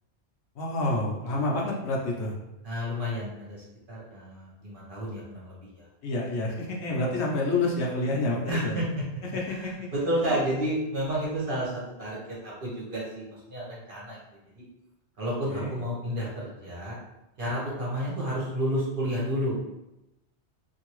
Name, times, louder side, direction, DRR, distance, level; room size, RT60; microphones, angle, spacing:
voice 1, 0.6-2.3 6.0-8.8 9.3-9.7 15.5-15.7, left 2 dB, 70° left, -2 dB, 0.9 m, -28 dB
voice 2, 2.6-5.9 8.5-8.9 9.4-14.2 14.5-14.6 15.2-17.0 17.4-19.7, equal, 50° right, -6 dB, 1.1 m, -31 dB
2.8 x 2.7 x 3.0 m, 0.91 s
omnidirectional pair, 1.2 m